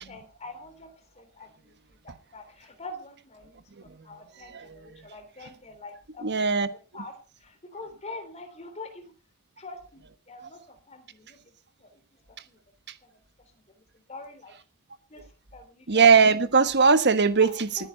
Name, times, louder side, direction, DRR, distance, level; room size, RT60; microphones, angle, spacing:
voice 1, 0.1-1.7 2.0-9.1 9.6-11.5 11.8-12.0 12.3-12.6 13.0-13.1 14.1-14.5 15.1-15.2 15.5-16.0 17.4-17.9, left 3 dB, 30° left, 7 dB, 3.4 m, -45 dB
voice 2, 6.2-6.7 15.9-17.9, right 5 dB, 50° right, 12 dB, 1.3 m, -19 dB
20.0 x 9.8 x 5.6 m, 0.37 s
head